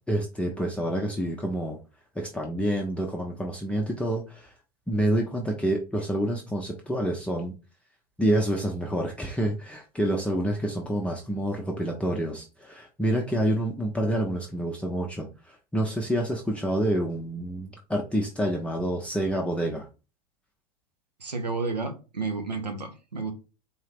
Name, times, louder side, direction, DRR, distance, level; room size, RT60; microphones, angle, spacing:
voice 1, 0.1-1.8 2.2-4.5 4.9-7.5 8.2-19.9, right 1 dB, 5° left, 0.6 m, -28 dB
voice 2, 21.2-23.3, right 4 dB, 85° right, 0.9 m, -31 dB
4.0 x 2.7 x 3.5 m
figure-of-eight pair, 85°, 21 cm